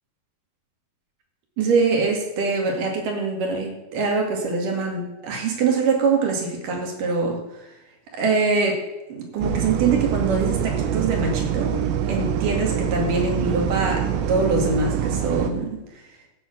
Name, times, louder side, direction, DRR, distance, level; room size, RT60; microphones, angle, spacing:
voice 1, 1.6-7.4 8.1-8.8 9.1-11.8 12.1-15.8, right 4 dB, 65° right, 1 dB, 3.6 m, -23 dB
sound 1, 9.4-15.5, right 8 dB, 80° right, 2.6 m, -25 dB
14.0 x 7.5 x 6.2 m, 1.0 s
omnidirectional pair, 4.2 m